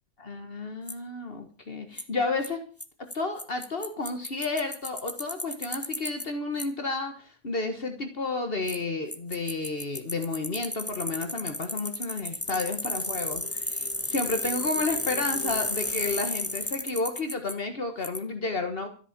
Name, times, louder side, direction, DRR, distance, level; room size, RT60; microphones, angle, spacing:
voice 1, 0.2-2.6 3.1-18.9, left 3 dB, 60° left, 6 dB, 1.6 m, -31 dB
Bicycle, 0.9-1.0 2.0-2.1 2.4-2.5 2.8-2.9 3.1-3.2 3.4-6.2 6.6-6.7 8.7-8.8 9.1-17.5 18.0-18.2, left 1 dB, 15° left, 1.2 m, -32 dB
13.5 x 8.9 x 7.3 m, 0.41 s
omnidirectional pair, 1.1 m